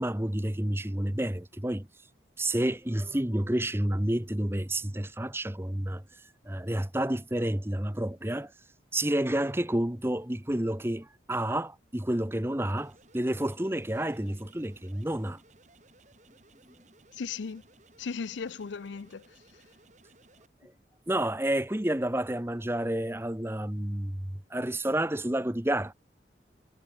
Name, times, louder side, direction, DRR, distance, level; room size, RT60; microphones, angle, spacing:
voice 1, 0.0-1.9 2.4-6.0 6.4-8.5 8.9-15.4 21.1-25.9, right 1 dB, 15° right, 1.0 m, -30 dB
sound 1, 12.7-20.5, right 2 dB, 40° right, 6.2 m, -60 dB
voice 2, 17.1-17.6 18.0-19.3, left 5 dB, 85° left, 0.5 m, -36 dB
head